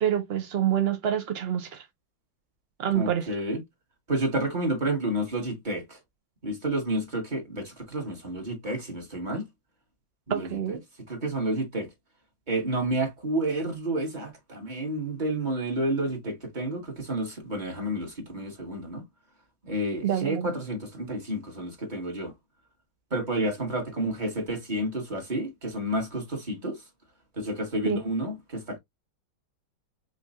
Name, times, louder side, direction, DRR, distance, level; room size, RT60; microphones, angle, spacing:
voice 1, 0.0-1.8 2.8-3.3 10.3-10.8 20.0-20.5 27.8-28.0, right 10 dB, 80° right, 0.5 m, -27 dB
voice 2, 3.0-3.6 4.1-6.0 6.4-9.4 10.3-10.8 11.1-11.9 12.5-19.1 19.6-22.3 23.1-26.8 27.4-28.8, right 1 dB, 25° right, 1.6 m, -30 dB
5.5 x 2.9 x 2.5 m
omnidirectional pair, 2.0 m